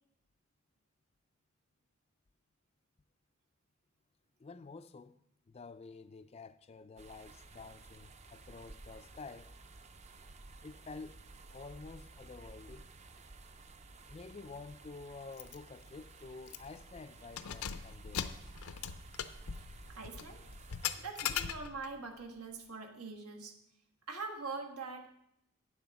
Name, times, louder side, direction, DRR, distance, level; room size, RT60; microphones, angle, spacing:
voice 1, 4.4-5.2 5.5-9.5 10.6-11.2 11.5-12.9 14.1-18.3, left 4 dB, 25° left, 0.3 m, -50 dB
sound 1, 7.0-21.1, right 3 dB, 30° right, 0.5 m, -54 dB
Keys jangling, 15.4-15.6 15.9-16.0 16.5-16.8 17.2-22.0, left 8 dB, 85° left, 0.6 m, -40 dB
voice 2, 19.6-20.4 21.0-23.6 24.1-25.1, right 4 dB, 85° right, 1.5 m, -43 dB
9.1 x 7.7 x 5.8 m
head